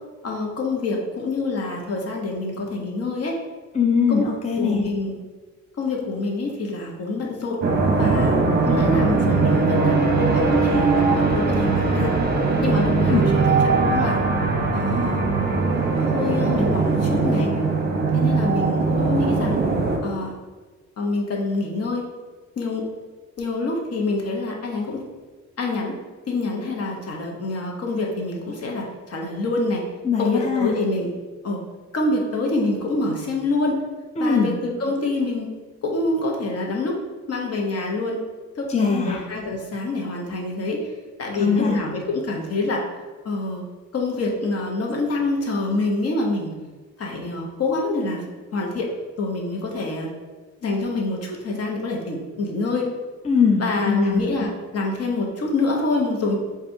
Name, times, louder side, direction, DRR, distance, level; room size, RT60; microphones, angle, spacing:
voice 1, 0.2-3.4 4.1-4.2 4.6-5.2 5.8-7.6 8.0-12.2 12.6-14.2 14.7-15.2 15.9-17.5 18.1-19.6 20.0-20.3 21.0-22.0 22.6-22.8 23.4-25.0 25.6-25.9 26.3-29.8 30.2-31.1 31.4-31.6 31.9-33.8 34.2-35.5 35.8-37.0 37.3-38.2 38.5-40.8 41.2-42.8 43.2-43.6 43.9-46.5 47.0-48.2 48.5-48.9 49.2-50.1 50.6-52.9 53.6-56.4, left 2 dB, 55° left, 0 dB, 1.0 m, -26 dB
voice 2, 3.7-4.8 13.1-13.3 30.0-30.7 34.2-34.5 38.7-39.2 41.4-41.8 53.3-54.2, left 5 dB, 20° left, 0 dB, 0.5 m, -21 dB
sound 1, 7.6-20.0, right 4 dB, 35° right, 0.7 m, -20 dB
7.5 x 2.5 x 2.7 m, 1.3 s
cardioid pair, 90°, 30 cm